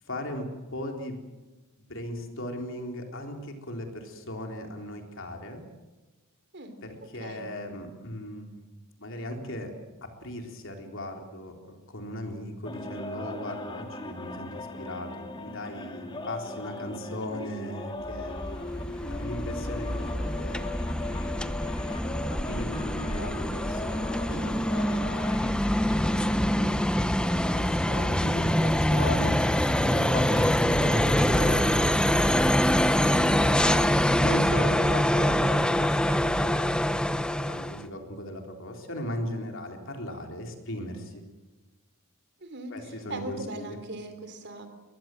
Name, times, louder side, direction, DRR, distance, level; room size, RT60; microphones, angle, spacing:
voice 1, 0.1-1.2 1.8-5.6 6.8-8.6 9.0-9.7 10.0-18.4 19.0-20.7 22.3-25.5 27.5-31.9 32.7-36.8 37.1-41.2 42.7-43.8, left 1 dB, 60° left, 3 dB, 3.8 m, -38 dB
voice 2, 7.2-7.5 24.2-24.5 35.2-35.7 42.4-44.7, right 1 dB, 55° right, 9 dB, 3.3 m, -40 dB
sound 1, 12.6-27.6, left 2 dB, 25° left, 2.2 m, -39 dB
sound 2, 18.0-37.8, equal, 5° left, 0.8 m, -25 dB
22.0 x 21.0 x 7.8 m, 1.2 s
head